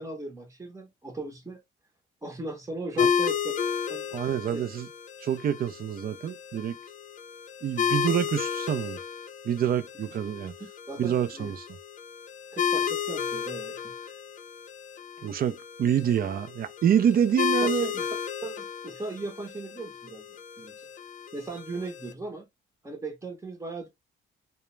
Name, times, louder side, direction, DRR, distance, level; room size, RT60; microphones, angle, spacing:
voice 1, 0.0-1.6 2.2-3.4 3.9-4.1 4.5-4.6 10.9-11.5 12.5-14.1 17.6-18.0 18.4-20.2 20.6-20.8 21.3-22.4 22.8-23.9, right 2 dB, 15° right, 0.7 m, -38 dB
sound 1, 3.0-22.1, left 7 dB, 40° left, 0.5 m, -33 dB
voice 2, 4.1-4.9 5.2-6.8 7.6-9.0 9.4-10.5 11.0-11.7 15.2-17.9, right 9 dB, 50° right, 0.4 m, -27 dB
2.3 x 2.1 x 3.0 m
cardioid pair, 90°, 20 cm